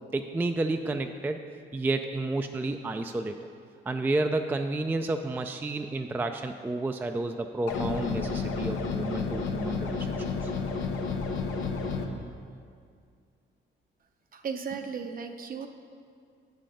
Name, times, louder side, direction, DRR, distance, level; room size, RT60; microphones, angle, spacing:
voice 1, 0.1-1.4 1.7-3.4 3.9-10.1 10.4-10.5, right 2 dB, 10° right, 6 dB, 0.3 m, -30 dB
sound 1, 7.7-12.1, left 4 dB, 90° left, 0.8 m, -31 dB
voice 2, 14.3-15.7, right 6 dB, 45° right, 6 dB, 0.7 m, -35 dB
8.2 x 5.9 x 5.0 m, 2.2 s
cardioid pair, 90°, 20 cm